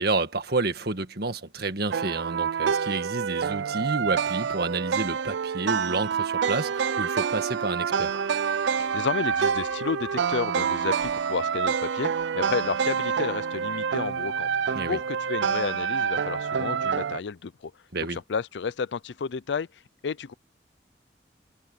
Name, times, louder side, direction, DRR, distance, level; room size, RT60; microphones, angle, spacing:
voice 1, 0.0-8.2 14.7-15.0 17.9-18.2, right 3 dB, 60° right, 1.8 m, -30 dB
sound 1, 1.9-17.2, right 7 dB, 85° right, 0.4 m, -27 dB
sound 2, 8.1-14.5, equal, ahead, 3.5 m, -47 dB
voice 2, 8.8-17.7 18.1-19.7 20.0-20.3, left 5 dB, 80° left, 0.5 m, -31 dB
head